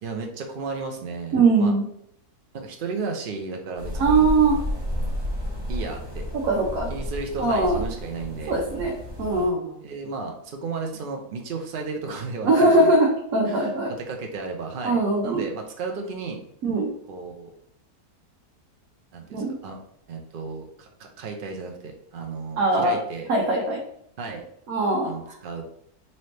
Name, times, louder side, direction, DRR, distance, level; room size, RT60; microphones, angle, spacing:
voice 1, 0.0-1.7 2.5-5.1 5.7-6.3 6.9-8.6 9.8-12.9 13.4-13.7 14.1-16.4 17.1-17.5 19.1-19.8 20.1-23.3 24.2-24.4 25.0-25.6, right 4 dB, 90° right, 3 dB, 0.4 m, -34 dB
voice 2, 1.3-1.9 4.0-4.6 6.4-6.9 7.4-7.8 8.5-8.9 9.2-9.8 12.4-13.9 14.8-15.4 16.6-16.9 19.3-19.6 22.6-23.0 23.3-23.8 24.7-25.1, right 2 dB, 70° right, -2 dB, 1.2 m, -21 dB
sound 1, 3.8-9.5, left 1 dB, 20° right, 1.0 m, -31 dB
4.2 x 2.8 x 3.2 m, 0.71 s
omnidirectional pair, 1.6 m